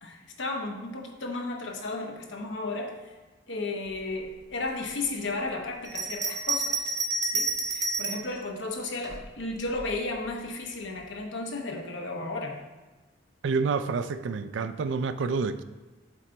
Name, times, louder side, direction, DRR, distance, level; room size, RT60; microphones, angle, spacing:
voice 1, 0.0-3.1 3.5-6.9 7.3-12.6, left 2 dB, 85° left, 2 dB, 1.0 m, -34 dB
Bell, 5.8-8.3 9.0-10.0, right 3 dB, 20° right, 0.5 m, -30 dB
voice 2, 13.4-15.6, right 4 dB, 85° right, 12 dB, 0.4 m, -28 dB
7.5 x 3.8 x 4.4 m, 1.2 s
head